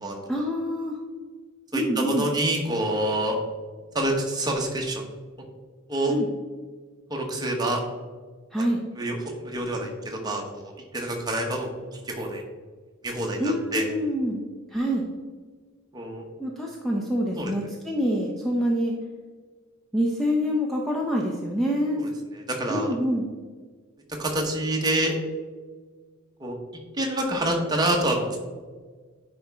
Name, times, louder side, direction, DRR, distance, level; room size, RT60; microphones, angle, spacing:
voice 1, 0.3-1.0 1.7-2.3 6.1-6.3 8.5-8.8 13.4-14.4 14.7-15.0 16.4-19.0 19.9-22.0 22.7-23.3, equal, ahead, -2 dB, 0.6 m, -26 dB
voice 2, 1.7-3.4 3.9-5.0 5.9-6.1 7.1-7.8 9.0-11.7 12.1-12.4 13.0-13.9 15.9-16.2 17.4-17.5 22.3-22.9 24.2-25.1 26.4-26.6 27.0-28.4, right 1 dB, 20° right, 1 dB, 1.1 m, -27 dB
9.8 x 4.3 x 3.5 m, 1.5 s
head